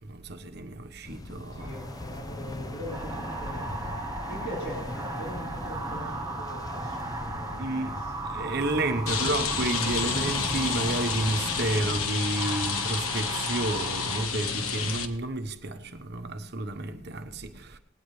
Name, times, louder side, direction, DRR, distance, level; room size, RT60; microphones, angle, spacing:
voice 1, 0.0-1.7 7.6-17.8, right 2 dB, 50° right, 1.0 m, -31 dB
sound 1, 1.0-12.1, left 1 dB, 15° left, 0.4 m, -38 dB
voice 2, 1.5-3.9 4.3-8.1, equal, 40° left, 3.7 m, -41 dB
sound 2, 1.6-14.3, right 2 dB, 15° right, 0.9 m, -37 dB
Rain, 9.1-15.0, left 6 dB, 85° left, 1.3 m, -30 dB
19.0 x 17.0 x 3.3 m
head